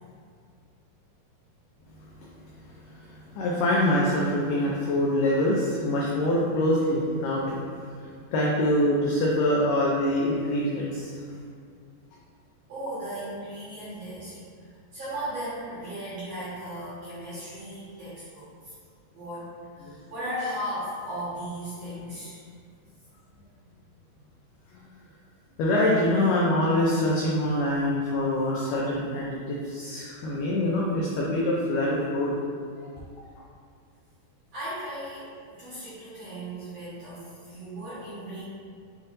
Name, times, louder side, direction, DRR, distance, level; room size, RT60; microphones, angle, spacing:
voice 1, 3.4-7.6 8.3-11.1 25.6-32.4, left 1 dB, 90° left, -4 dB, 1.9 m, -24 dB
voice 2, 12.7-18.7 19.1-19.5 19.8-22.4 34.5-35.3 35.6-38.4, right 1 dB, 55° right, -13 dB, 1.9 m, -36 dB
7.6 x 2.6 x 2.6 m, 2.1 s
omnidirectional pair, 4.5 m